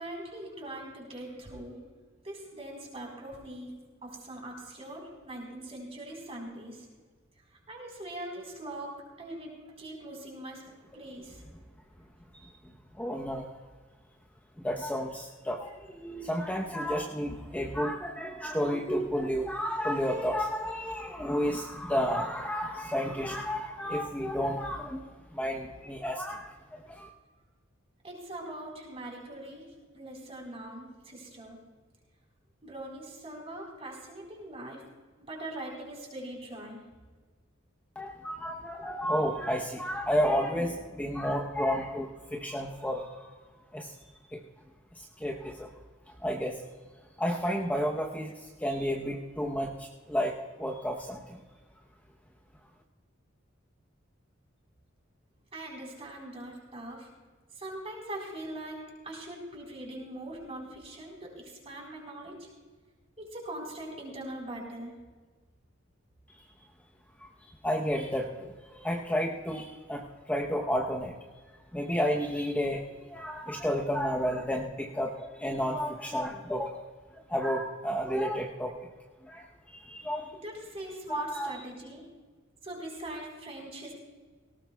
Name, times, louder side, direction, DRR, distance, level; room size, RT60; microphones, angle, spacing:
voice 1, 0.0-1.8 2.2-3.7 4.0-6.9 7.7-10.6 10.9-11.4 28.0-29.6 29.9-31.6 32.6-34.8 35.3-36.8 55.5-57.1 57.5-58.8 59.0-62.5 63.2-64.9 80.4-82.0 82.6-83.9, right 1 dB, 30° right, -1 dB, 4.2 m, -41 dB
voice 2, 12.3-13.5 14.6-25.1 25.3-27.1 38.0-43.3 43.7-43.9 44.3-44.4 45.0-45.7 46.2-46.6 47.2-51.4 67.2-67.3 67.6-71.1 71.7-76.8 77.3-78.8 79.3-79.5 79.7-80.4 81.1-81.6, equal, 5° left, -1 dB, 0.9 m, -31 dB
18.5 x 18.0 x 2.3 m, 1.4 s
head